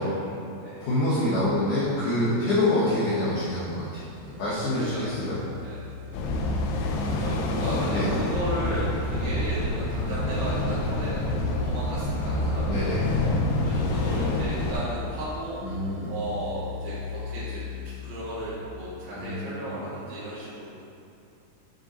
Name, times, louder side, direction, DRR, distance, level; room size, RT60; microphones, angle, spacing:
voice 1, 0.0-0.8 4.7-5.1 5.5-5.9 7.2-13.0 13.6-15.6 16.0-17.6 18.0-20.7, right 1 dB, 60° right, -12 dB, 3.2 m, -35 dB
voice 2, 0.8-5.4 7.9-8.1 12.7-13.1 15.6-16.1 19.1-19.7, left 1 dB, 60° left, -10 dB, 2.4 m, -26 dB
sound 1, 3.5-18.5, left 5 dB, 80° right, 3.1 m, -39 dB
sound 2, 6.1-14.8, left 1 dB, 80° left, 2.7 m, -27 dB
9.3 x 8.0 x 3.1 m, 2.5 s
omnidirectional pair, 5.0 m